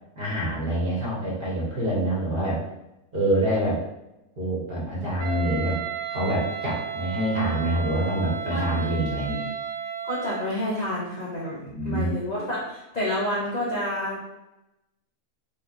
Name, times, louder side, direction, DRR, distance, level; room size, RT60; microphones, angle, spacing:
voice 1, 0.2-2.6 3.1-3.8 4.4-5.8 6.1-9.4 11.6-12.2, right 1 dB, 40° right, -6 dB, 1.0 m, -26 dB
Wind instrument woodwind instrument, 5.2-10.5, right 7 dB, 85° right, 1.1 m, -33 dB
voice 2, 10.0-11.6 11.8-14.4, left 1 dB, 50° left, -6 dB, 0.5 m, -29 dB
3.4 x 3.0 x 2.4 m, 0.92 s
omnidirectional pair, 1.5 m